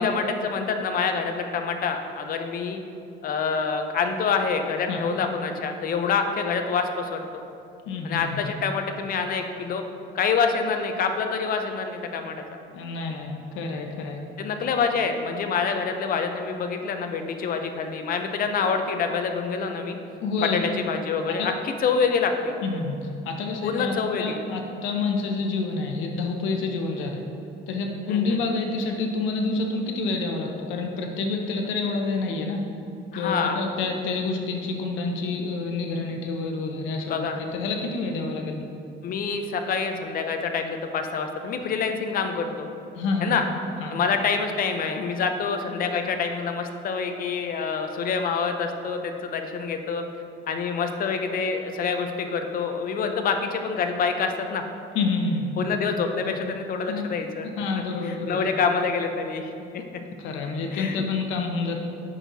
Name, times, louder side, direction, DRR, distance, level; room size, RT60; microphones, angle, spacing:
voice 1, 0.0-2.8 3.2-7.4 8.0-9.8 10.1-12.6 14.4-20.0 20.4-22.5 23.6-24.4 28.1-28.4 33.1-33.6 37.1-37.4 39.0-42.7 43.2-43.5 43.9-50.0 50.5-54.6 55.6-57.5 58.0-59.8 60.7-61.0, left 5 dB, 50° left, 5 dB, 0.7 m, -26 dB
voice 2, 7.9-8.3 12.7-14.2 20.2-20.6 21.4-21.5 22.6-27.2 27.7-32.6 33.2-37.2 37.5-38.6 42.9-43.3 43.8-44.0 54.9-55.5 56.2-56.3 56.9-57.0 57.6-58.4 60.2-61.8, left 3 dB, 90° left, 3 dB, 1.0 m, -28 dB
9.7 x 6.3 x 2.8 m, 2.6 s
cardioid pair, 135°, 19 cm